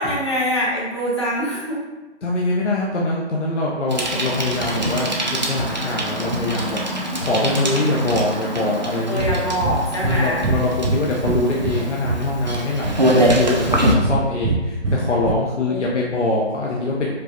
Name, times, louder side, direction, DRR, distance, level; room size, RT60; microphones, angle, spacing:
voice 1, 0.0-1.8 9.1-10.5 15.7-16.0, equal, 25° left, -6 dB, 0.6 m, -24 dB
voice 2, 2.2-6.8 7.2-9.2 9.7-17.1, left 2 dB, 85° left, -3 dB, 0.8 m, -23 dB
Bicycle, 3.9-14.0, right 1 dB, 40° right, 0.4 m, -24 dB
Breathing, 9.2-9.4 9.6-9.8 10.0-10.2 10.4-11.8 12.0-13.0 13.3-14.2 14.4-15.3, right 3 dB, 90° right, 0.6 m, -23 dB
5.0 x 2.3 x 2.9 m, 1.1 s
hypercardioid pair, 170°, 34 cm